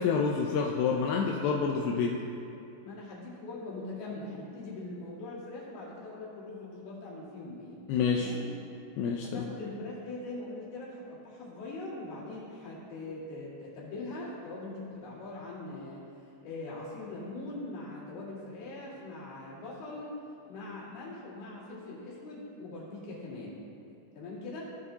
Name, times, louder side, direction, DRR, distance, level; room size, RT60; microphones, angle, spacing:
voice 1, 0.0-2.2 7.9-8.3 9.0-9.4, left 5 dB, 80° left, 0 dB, 2.4 m, -28 dB
voice 2, 2.8-7.8 8.1-8.4 9.2-16.1 16.4-23.6 24.1-24.6, left 2 dB, 65° left, -7 dB, 3.8 m, -42 dB
15.5 x 6.7 x 2.8 m, 2.6 s
omnidirectional pair, 5.0 m